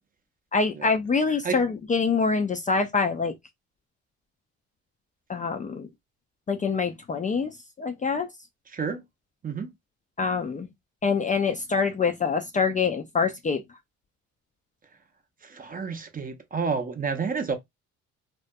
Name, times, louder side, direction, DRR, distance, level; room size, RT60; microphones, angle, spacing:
voice 1, 0.5-3.3 5.3-5.9 6.5-7.5 7.8-8.3 10.2-10.7 11.0-13.6, left 5 dB, 25° left, 0.4 m, -25 dB
voice 2, 15.4-17.6, right 5 dB, 30° right, 0.5 m, -30 dB
2.3 x 2.1 x 2.5 m
supercardioid pair, 75°, 31 cm